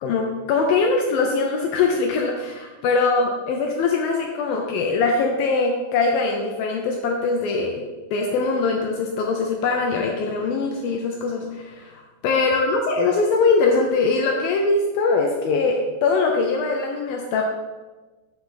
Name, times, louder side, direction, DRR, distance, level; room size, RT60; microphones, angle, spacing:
voice 1, 0.0-17.4, left 4 dB, 80° left, 1 dB, 2.2 m, -22 dB
7.6 x 7.2 x 3.7 m, 1.3 s
omnidirectional pair, 4.7 m